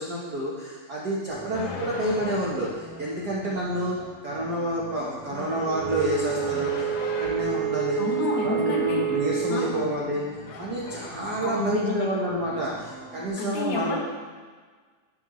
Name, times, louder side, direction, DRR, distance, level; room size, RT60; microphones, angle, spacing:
voice 1, 0.0-4.0 4.2-8.0 8.3-10.2 10.6-14.0, right 1 dB, 85° right, -5 dB, 0.8 m, -29 dB
sound 1, 1.3-13.3, equal, 15° right, 0.5 m, -46 dB
sound 2, 1.5-2.8 5.2-7.6 9.7-10.1 10.5-11.1, left 4 dB, 80° left, 2.4 m, -38 dB
Wind instrument woodwind instrument, 5.6-9.8, right 9 dB, 65° right, 2.3 m, -28 dB
voice 2, 8.0-9.0 9.5-9.9 11.4-12.1 13.4-14.0, left 3 dB, 65° left, -1 dB, 2.4 m, -29 dB
11.5 x 6.5 x 3.1 m, 1.5 s
omnidirectional pair, 3.6 m